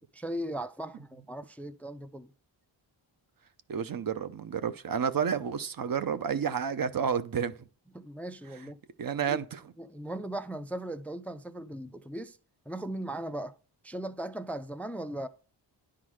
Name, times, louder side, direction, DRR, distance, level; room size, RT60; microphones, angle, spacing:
voice 1, 0.1-2.3 7.9-8.8 9.3-9.4 9.8-12.4 12.7-13.6 13.8-15.3, right 1 dB, 5° left, 0.3 m, -38 dB
voice 2, 3.7-7.5 9.0-9.6, right 7 dB, 50° right, 0.7 m, -30 dB
10.5 x 3.8 x 6.3 m
wide cardioid pair, 175°, 45 cm